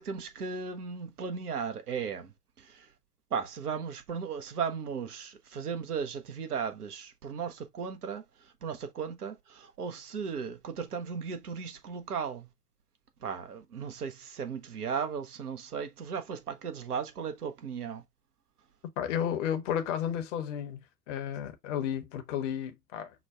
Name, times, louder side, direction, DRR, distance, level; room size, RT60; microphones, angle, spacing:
voice 1, 0.0-2.9 3.3-12.5 13.2-18.0, right 6 dB, 75° right, 0.8 m, -36 dB
voice 2, 19.0-23.1, left 9 dB, 50° left, 0.8 m, -33 dB
6.0 x 2.2 x 2.3 m
figure-of-eight pair, 85°, 45 cm